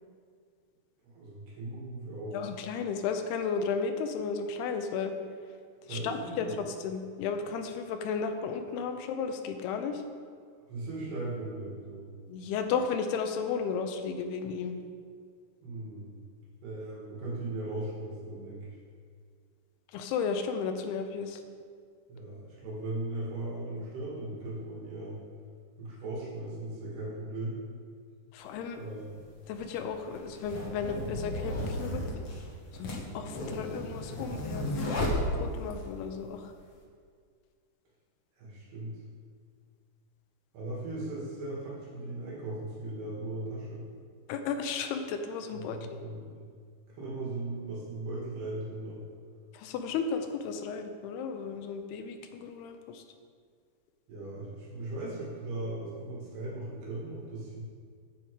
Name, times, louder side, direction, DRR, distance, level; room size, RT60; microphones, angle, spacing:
voice 1, 1.0-2.4 5.8-6.5 10.7-12.1 15.6-16.1 16.6-18.7 22.1-25.2 25.8-27.6 28.7-29.2 38.4-39.0 40.5-43.8 45.5-46.4 47.0-49.0 54.1-57.6, right 2 dB, 75° right, -6 dB, 4.0 m, -38 dB
voice 2, 2.3-5.1 5.9-10.0 12.3-14.8 19.9-21.4 28.3-28.8 29.5-32.0 32.7-35.1 35.4-36.5 44.3-46.0 49.5-53.0, left 5 dB, 90° left, 6 dB, 2.7 m, -34 dB
sound 1, 28.4-28.5 29.4-35.9, left 1 dB, 70° left, 1.3 m, -34 dB
10.0 x 7.2 x 4.7 m, 2.1 s
omnidirectional pair, 4.7 m